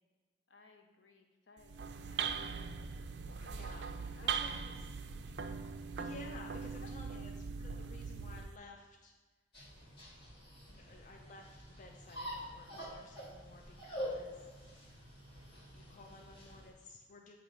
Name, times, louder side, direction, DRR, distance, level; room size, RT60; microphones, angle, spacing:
voice 1, 0.5-2.9 3.2-3.5 4.0-6.0 6.3-6.5 6.8-6.9 7.1-7.3, left 3 dB, 75° left, 3 dB, 0.9 m, -62 dB
sound 1, 1.6-8.6, right 6 dB, 65° right, 0.4 m, -40 dB
voice 2, 3.4-3.9 4.2-5.0 6.0-9.1 10.7-14.7 15.7-17.3, left 3 dB, 40° left, 2 dB, 0.4 m, -54 dB
sound 2, 9.5-16.7, equal, 60° left, 2.0 m, -46 dB
7.9 x 3.0 x 4.9 m, 1.4 s
head